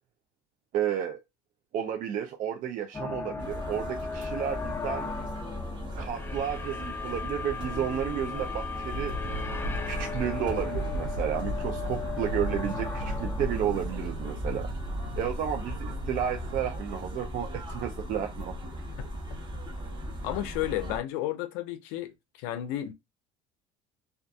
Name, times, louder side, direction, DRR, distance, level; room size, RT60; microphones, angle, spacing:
voice 1, 0.7-1.2 1.7-5.1 6.0-9.2 9.9-14.7 15.2-18.5, right 9 dB, 50° right, 0.4 m, -32 dB
sound 1, 2.9-15.1, left 5 dB, 15° left, 0.4 m, -37 dB
sound 2, 3.4-21.0, equal, 25° right, 1.2 m, -38 dB
sound 3, 8.9-16.7, right 1 dB, 70° right, 1.0 m, -35 dB
voice 2, 20.2-22.1 22.4-22.9, left 13 dB, 75° left, 0.5 m, -32 dB
2.5 x 2.4 x 2.2 m
supercardioid pair, 80°, 18 cm